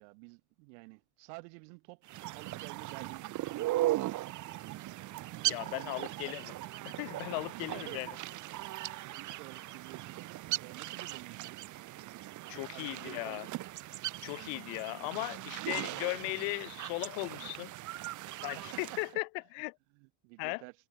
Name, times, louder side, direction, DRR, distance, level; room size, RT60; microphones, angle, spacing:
voice 1, 0.0-2.0 2.3-3.8 5.3-6.1 7.4-7.5 7.7-8.2 9.0-11.7 12.3-13.5 18.5-18.7 18.9-19.0 19.9-20.7, right 40 dB or more, 75° right, 3.1 m, -50 dB
sound 1, 2.0-19.1, right 16 dB, 40° right, 0.6 m, -38 dB
voice 2, 5.5-6.5 6.9-8.1 12.5-13.5 14.2-17.7 18.4-19.8 20.4-20.6, left 40 dB or more, 65° left, 0.8 m, -37 dB
supercardioid pair, 90°, 49 cm